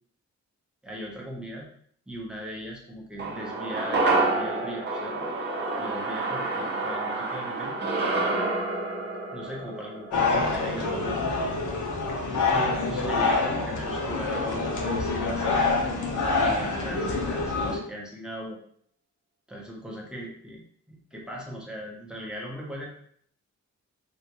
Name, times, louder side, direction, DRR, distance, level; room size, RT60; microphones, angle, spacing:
voice 1, 0.8-1.7 2.1-5.3 5.8-7.8 9.3-11.3 12.4-18.6 19.5-20.6 20.9-22.9, right 1 dB, 5° right, -3 dB, 0.7 m, -39 dB
sound 1, 3.2-11.7 12.0-12.1, right 2 dB, 35° right, 0.7 m, -29 dB
sound 2, 10.1-17.8, left 3 dB, 85° left, 0.8 m, -26 dB
3.4 x 2.4 x 2.9 m, 0.63 s
wide cardioid pair, 175°, 30 cm